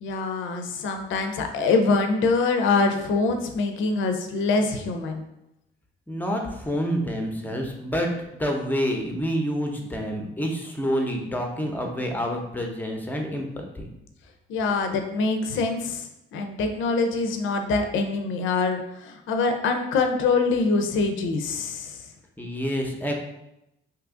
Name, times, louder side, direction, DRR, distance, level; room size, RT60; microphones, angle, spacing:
voice 1, 0.0-5.2 14.5-22.0, left 3 dB, 80° left, 5 dB, 0.5 m, -24 dB
voice 2, 6.1-13.5 13.7-13.9 22.4-23.1, equal, 10° left, 2 dB, 0.6 m, -28 dB
2.8 x 2.4 x 3.6 m, 0.87 s
cardioid pair, 90°, 20 cm